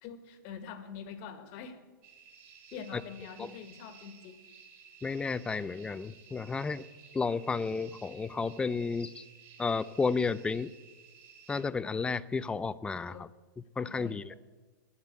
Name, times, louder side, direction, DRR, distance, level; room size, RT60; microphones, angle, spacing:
voice 1, 0.0-1.8 2.7-4.4 13.1-13.2 13.8-14.2, left 7 dB, 45° left, 9 dB, 1.5 m, -45 dB
sound 1, 2.0-11.6, right 7 dB, 45° right, 3.4 m, -55 dB
voice 2, 5.0-6.8 7.1-9.3 9.6-10.7 11.5-13.3 13.8-14.3, left 4 dB, 10° left, 17 dB, 0.3 m, -32 dB
8.8 x 8.2 x 8.7 m, 1.3 s
hypercardioid pair, 120°, 11 cm